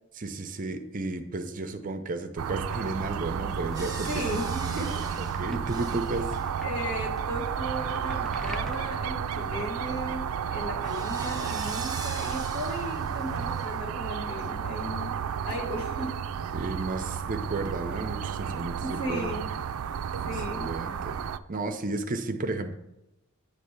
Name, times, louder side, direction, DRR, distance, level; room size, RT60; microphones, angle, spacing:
voice 1, 0.1-4.4 5.2-6.3 16.5-19.3 20.5-21.2 21.5-22.7, right 2 dB, 40° right, 7 dB, 0.6 m, -33 dB
sound 1, 2.4-21.4, right 7 dB, 80° right, 0.3 m, -32 dB
sound 2, 3.5-8.8, right 1 dB, ahead, 0.4 m, -42 dB
voice 2, 3.6-5.0 6.6-10.3 10.5-16.1 18.8-19.5 20.2-20.7, equal, 80° left, -2 dB, 2.1 m, -36 dB
sound 3, 3.7-14.9, right 4 dB, 20° right, 0.9 m, -44 dB
8.6 x 3.4 x 6.6 m, 0.91 s
head